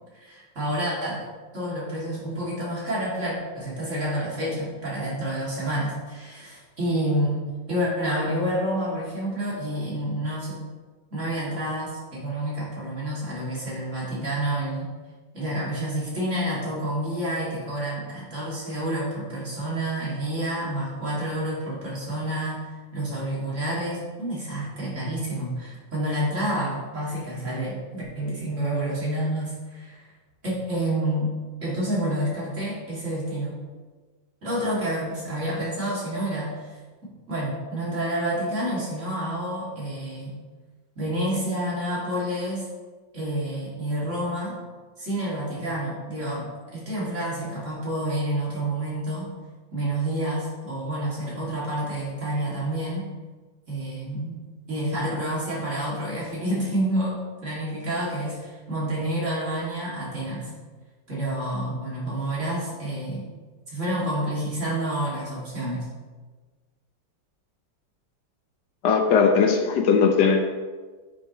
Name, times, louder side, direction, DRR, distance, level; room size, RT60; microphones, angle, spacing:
voice 1, 0.2-1.2 1.5-10.6 11.1-14.9 15.3-30.1 30.4-31.3 31.6-33.5 34.4-36.7 37.0-40.4 41.0-42.7 43.1-44.6 45.0-49.3 49.7-53.1 53.7-54.4 54.7-60.5 61.1-63.2 63.7-65.9, right 1 dB, 40° right, -6 dB, 2.7 m, -29 dB
voice 2, 68.8-70.4, left 5 dB, 70° left, 5 dB, 1.2 m, -19 dB
9.5 x 6.2 x 3.0 m, 1.3 s
omnidirectional pair, 2.1 m